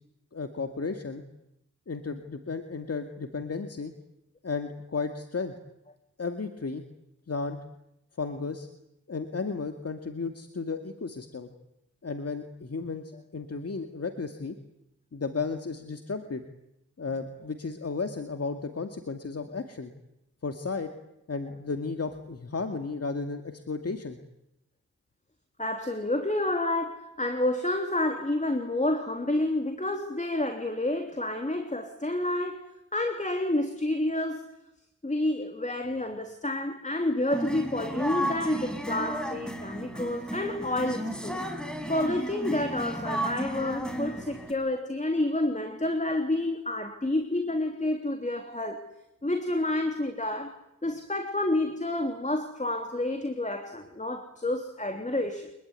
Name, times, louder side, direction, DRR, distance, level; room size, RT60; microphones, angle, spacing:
voice 1, 0.3-1.2 1.9-3.9 4.4-5.5 6.2-6.8 7.3-7.6 8.2-8.7 9.1-11.5 12.0-14.6 15.1-16.4 17.0-19.9 20.4-20.9 21.3-24.2, left 4 dB, 50° left, 2.3 m, -34 dB
voice 2, 25.6-34.5 35.0-41.4 41.9-48.8 49.2-55.5, left 1 dB, 25° left, 3.2 m, -29 dB
sound 1, 37.3-44.5, right 1 dB, 5° left, 4.6 m, -34 dB
25.5 x 21.5 x 9.7 m
cardioid pair, 50°, 31 cm